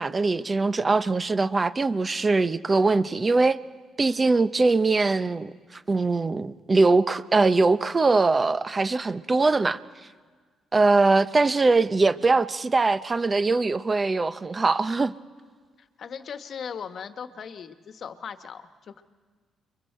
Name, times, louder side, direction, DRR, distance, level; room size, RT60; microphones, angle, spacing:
voice 1, 0.0-3.6 4.0-9.8 10.7-15.1, right 3 dB, 35° right, 0.9 m, -22 dB
voice 2, 15.8-19.0, left 7 dB, 60° left, 1.3 m, -38 dB
29.5 x 22.5 x 4.5 m
supercardioid pair, 55°, 0 cm